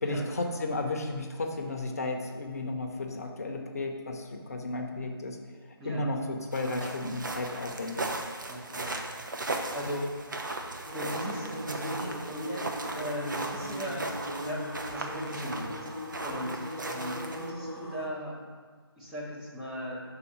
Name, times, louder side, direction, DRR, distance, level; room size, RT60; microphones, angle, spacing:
voice 1, 0.0-5.4 5.8-8.1, left 2 dB, 40° left, 3 dB, 0.7 m, -33 dB
sound 1, 6.5-17.5, right 2 dB, 50° right, 0.7 m, -37 dB
voice 2, 8.5-9.1 9.7-10.1 10.9-15.9 16.2-18.4 19.0-20.0, equal, ahead, -10 dB, 0.5 m, -37 dB
sound 2, 10.8-18.1, equal, 75° right, 1.0 m, -40 dB
5.6 x 3.8 x 5.7 m, 1.5 s
figure-of-eight pair, 155°, 13 cm